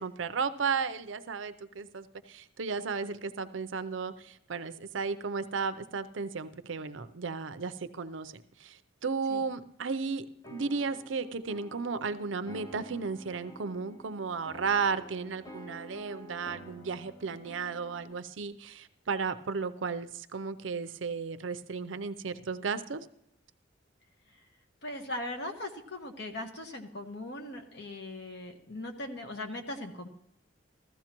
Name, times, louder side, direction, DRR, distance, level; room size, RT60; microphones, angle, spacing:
voice 1, 0.0-23.1, right 5 dB, 75° right, 11 dB, 0.6 m, -34 dB
sound 1, 10.4-18.2, equal, 15° left, 0.5 m, -50 dB
voice 2, 24.8-30.1, left 1 dB, 60° left, 4 dB, 1.4 m, -39 dB
15.5 x 13.5 x 3.0 m, 0.74 s
head